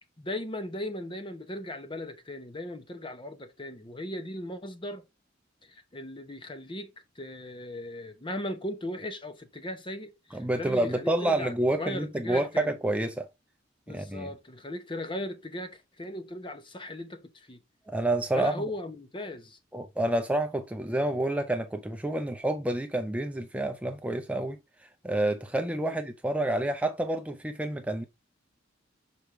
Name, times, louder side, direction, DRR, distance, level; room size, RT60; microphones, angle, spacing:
voice 1, 0.2-5.0 5.6-12.7 13.9-17.6 18.4-19.6 25.8-26.0, left 1 dB, 25° left, 0.9 m, -38 dB
voice 2, 10.3-13.3 13.9-14.3 17.9-18.6 19.7-28.0, right 1 dB, 5° right, 0.5 m, -29 dB
6.6 x 4.4 x 3.3 m
head